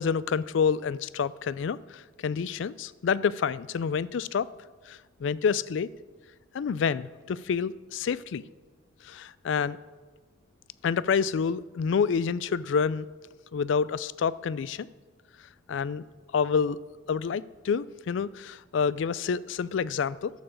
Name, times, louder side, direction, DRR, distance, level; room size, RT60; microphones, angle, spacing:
voice 1, 0.0-4.5 4.9-5.9 6.5-8.4 9.0-9.8 10.8-13.1 13.5-14.9 15.7-16.0 16.3-16.8 17.1-20.3, left 6 dB, 75° left, 19 dB, 0.3 m, -28 dB
12.5 x 7.0 x 6.5 m, 1.4 s
head